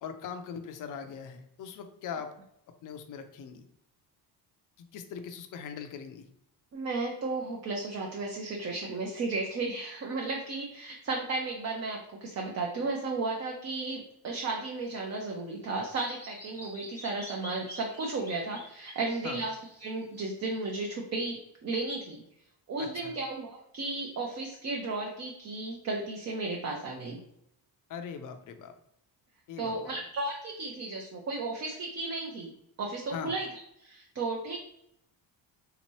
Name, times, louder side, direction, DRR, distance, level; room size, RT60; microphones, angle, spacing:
voice 1, 0.0-2.3 2.8-3.6 4.8-6.3 19.2-19.4 22.8-23.1 27.9-28.7 29.5-30.0 33.1-33.3, left 7 dB, 45° left, 7 dB, 0.5 m, -40 dB
voice 2, 6.7-22.2 22.7-27.2 29.6-32.5 32.8-34.6, right 3 dB, 35° right, 0 dB, 0.6 m, -34 dB
Bird vocalization bird call bird song, 14.8-20.7, equal, 5° left, 0.7 m, -48 dB
3.4 x 2.9 x 3.0 m, 0.76 s
cardioid pair, 130°, 44 cm